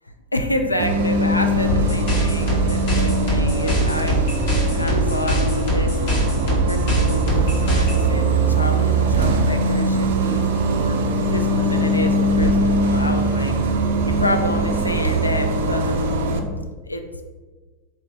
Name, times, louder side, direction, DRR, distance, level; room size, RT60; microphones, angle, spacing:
voice 1, 0.3-4.2 4.7-6.0 6.5-11.0 11.3-13.5 14.0-16.0 16.4-17.2, left 1 dB, 85° left, 5 dB, 0.3 m, -28 dB
Bus, 0.8-16.4, right 2 dB, 55° right, 0.3 m, -21 dB
tekno beat loop, 1.7-8.1, equal, 50° left, 1.2 m, -22 dB
3.4 x 2.6 x 3.2 m, 1.4 s
figure-of-eight pair, 90°, 0 cm